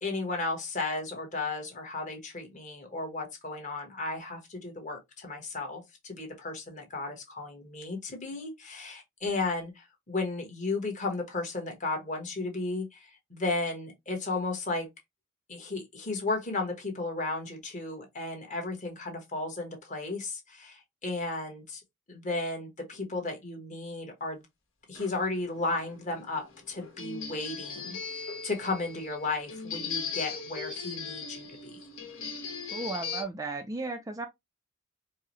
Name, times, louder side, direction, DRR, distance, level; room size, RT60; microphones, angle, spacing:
voice 1, 0.0-14.9 15.5-21.8 22.1-24.4 24.9-31.8, left 3 dB, 35° left, 1.2 m, -34 dB
sound 1, 24.9-33.2, left 5 dB, 75° left, 1.3 m, -39 dB
voice 2, 32.7-34.3, right 3 dB, 15° right, 0.3 m, -35 dB
4.6 x 2.0 x 2.9 m
head